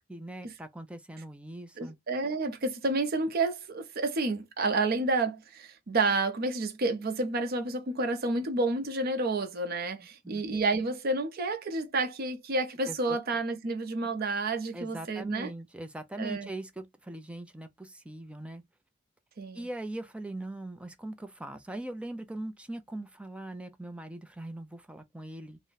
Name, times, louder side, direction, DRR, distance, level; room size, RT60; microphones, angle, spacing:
voice 1, 0.1-2.0 10.2-10.4 12.9-13.2 14.7-18.6 19.5-25.6, right 1 dB, 5° right, 0.4 m, -41 dB
voice 2, 1.8-15.5 16.2-16.5 19.4-19.7, right 3 dB, 50° right, 0.6 m, -30 dB
2.6 x 2.1 x 3.8 m
head